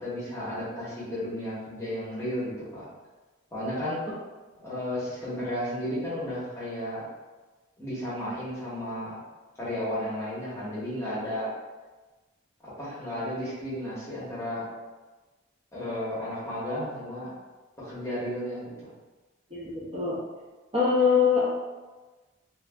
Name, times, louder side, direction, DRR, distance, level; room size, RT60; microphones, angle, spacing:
voice 1, 0.0-2.9 3.5-4.0 4.6-7.0 7.8-9.2 9.6-11.5 12.8-14.6 15.7-17.3 17.8-18.9, equal, 15° left, -10 dB, 1.0 m, -33 dB
voice 2, 19.5-20.2 20.7-21.5, left 5 dB, 25° right, -8 dB, 0.5 m, -23 dB
3.2 x 2.5 x 2.3 m, 1.2 s
head